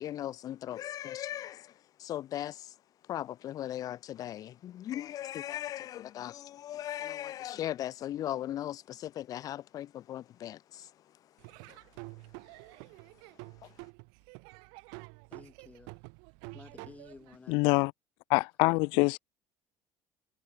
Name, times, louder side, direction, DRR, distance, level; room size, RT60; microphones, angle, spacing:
voice 1, 0.0-1.7 2.0-2.7 3.1-10.9 11.7-11.8 13.6-13.7, left 12 dB, 50° left, 1.0 m, -38 dB
Laughter / Drum, 11.4-17.4, right 39 dB, 85° right, 2.4 m, -49 dB
voice 2, 15.3-15.9 16.5-17.6 18.6-19.1, left 3 dB, 20° left, 7.8 m, -53 dB
voice 3, 17.5-17.9 18.3-19.2, left 28 dB, 80° left, 0.4 m, -25 dB
cardioid pair, 115°, 8 cm